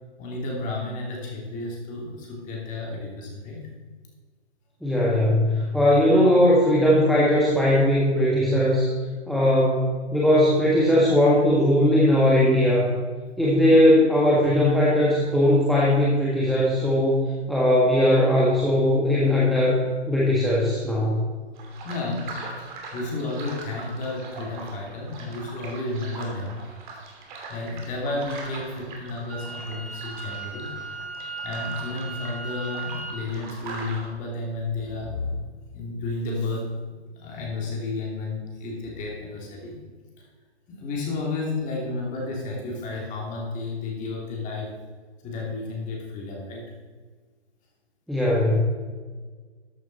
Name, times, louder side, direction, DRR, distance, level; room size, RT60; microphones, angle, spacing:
voice 1, 0.2-3.6 21.8-22.3 22.6-26.6 26.9-27.0 27.5-30.7 31.4-35.4 35.7-36.7 37.2-39.8 40.7-44.7 45.2-46.6, left 2 dB, 20° left, -1 dB, 3.0 m, -32 dB
voice 2, 4.8-8.9 9.3-13.0 13.4-19.8 20.1-21.2 48.1-48.6, left 1 dB, ahead, -7 dB, 1.5 m, -19 dB
sound 1, 21.5-34.1, right 3 dB, 45° right, 2.9 m, -41 dB
Wind instrument woodwind instrument, 29.3-33.3, right 4 dB, 70° right, 2.9 m, -37 dB
13.5 x 8.8 x 4.2 m, 1.5 s
figure-of-eight pair, 130°, 34 cm